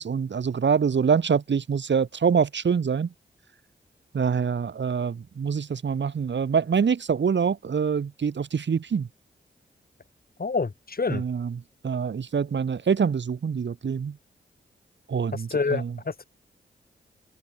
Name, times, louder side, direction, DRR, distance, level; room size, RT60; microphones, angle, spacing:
voice 1, 0.0-3.1 4.1-9.1 11.1-14.2 15.1-15.9, right 6 dB, 70° right, 2.8 m, -25 dB
voice 2, 10.4-11.2 15.3-16.2, left 4 dB, 50° left, 6.7 m, -28 dB
cardioid pair, 45°, 19 cm